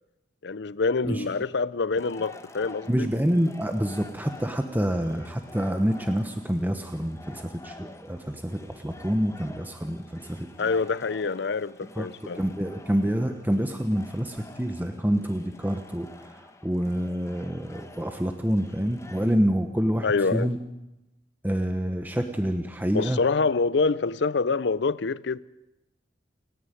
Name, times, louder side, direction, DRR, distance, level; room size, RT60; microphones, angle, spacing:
voice 1, 0.4-3.1 10.6-12.4 20.0-20.5 22.9-25.4, left 4 dB, 70° left, 0.6 m, -26 dB
sound 1, 1.9-19.4, left 2 dB, 15° left, 1.1 m, -48 dB
voice 2, 2.9-10.5 12.0-12.1 12.3-20.6 21.4-23.2, equal, 10° right, 1.0 m, -27 dB
29.0 x 10.0 x 9.2 m
head